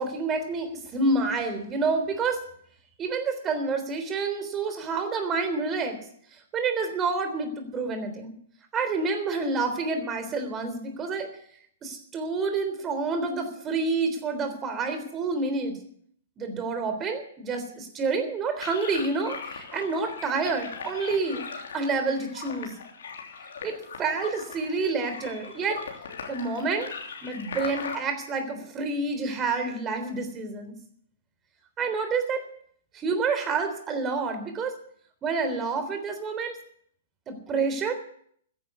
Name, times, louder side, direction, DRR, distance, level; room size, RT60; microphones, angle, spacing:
voice 1, 0.0-2.4 3.0-6.0 6.3-8.3 8.7-11.3 11.8-15.8 16.4-21.4 21.7-22.7 23.6-25.9 26.3-26.9 27.2-30.8 31.8-32.5 32.9-34.8 35.2-36.6 37.3-37.9, right 4 dB, 20° right, 7 dB, 3.6 m, -28 dB
sound 1, 18.6-28.0, left 5 dB, 65° left, 3.2 m, -39 dB
14.0 x 11.0 x 8.3 m, 0.64 s
figure-of-eight pair, 115°, 0 cm